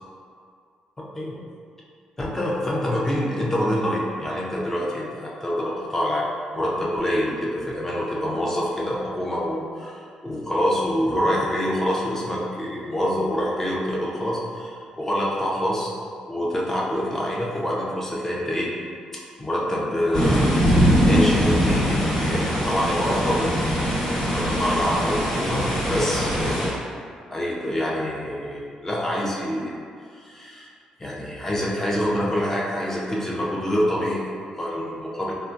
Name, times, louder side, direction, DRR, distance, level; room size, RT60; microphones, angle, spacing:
voice 1, 2.2-6.2 6.5-15.9 16.3-18.7 19.4-20.6 21.0-26.8 27.3-29.7 30.1-30.7 31.0-35.3, equal, 15° left, -5 dB, 0.5 m, -26 dB
sound 1, 20.1-26.7, equal, 40° left, 0.9 m, -22 dB
2.8 x 2.2 x 2.6 m, 2.2 s
cardioid pair, 120°, 2 cm